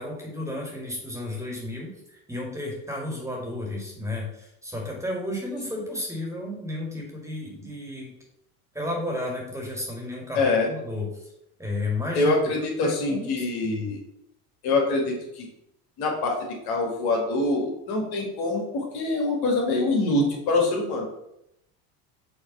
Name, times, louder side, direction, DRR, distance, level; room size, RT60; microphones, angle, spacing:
voice 1, 0.0-8.1 8.7-11.3 11.6-12.6 12.8-13.9, left 2 dB, 5° right, -1 dB, 2.1 m, -33 dB
voice 2, 10.4-10.7 12.2-14.0 14.6-15.5 16.0-21.1, left 2 dB, 55° left, 1 dB, 1.9 m, -25 dB
5.7 x 3.1 x 5.5 m, 0.80 s
supercardioid pair, 95°, 45 cm